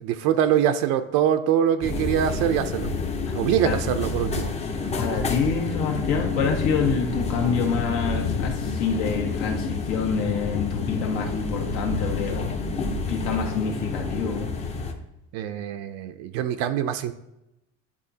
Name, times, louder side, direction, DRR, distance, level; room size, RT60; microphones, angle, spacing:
voice 1, 0.0-2.9 3.3-4.5 15.3-17.1, right 10 dB, 75° right, 9 dB, 0.5 m, -24 dB
sound 1, 1.8-14.9, left 4 dB, 20° left, 0.5 m, -28 dB
voice 2, 4.9-12.5 12.7-14.5, left 5 dB, 85° left, 2 dB, 1.4 m, -27 dB
9.9 x 3.7 x 2.7 m, 0.88 s
cardioid pair, 150°, 35 cm